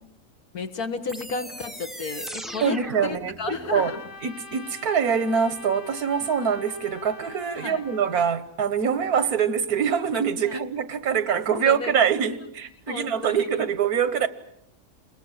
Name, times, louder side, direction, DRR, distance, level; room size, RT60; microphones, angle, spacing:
voice 1, 0.5-4.0 7.6-7.8 10.4-10.6 11.3-12.2 12.4-12.5 12.9-13.5, left 4 dB, 80° left, 2.2 m, -33 dB
sound 1, 1.1-3.9, equal, ahead, 0.5 m, -39 dB
voice 2, 2.6-3.9 4.2-14.3, right 7 dB, 90° right, 1.7 m, -24 dB
Trumpet, 3.7-8.4, left 3 dB, 55° left, 1.8 m, -44 dB
28.5 x 21.5 x 7.4 m
omnidirectional pair, 1.5 m